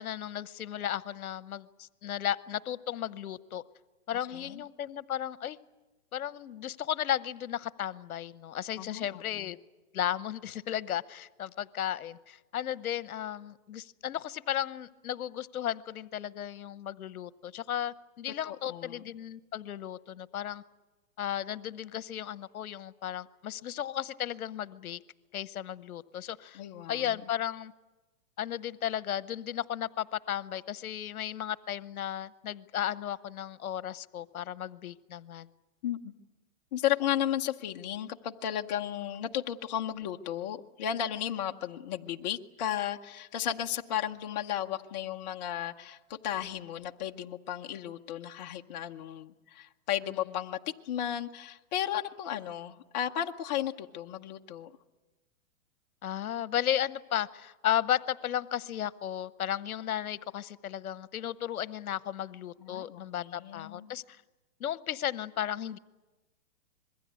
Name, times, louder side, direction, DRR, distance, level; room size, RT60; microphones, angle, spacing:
voice 1, 0.0-3.6 4.1-5.6 6.1-9.6 9.9-20.6 21.2-25.0 25.3-26.6 26.9-27.7 28.4-35.5 56.0-64.2 64.6-65.8, left 11 dB, 75° left, 16 dB, 1.0 m, -34 dB
voice 2, 4.3-4.6 8.8-9.5 18.4-19.0 26.5-27.3 35.8-36.1 36.7-50.6 50.8-54.7 62.6-63.9, left 11 dB, 30° left, 3 dB, 0.8 m, -34 dB
26.0 x 21.5 x 8.4 m, 1.1 s
hypercardioid pair, 155°, 44 cm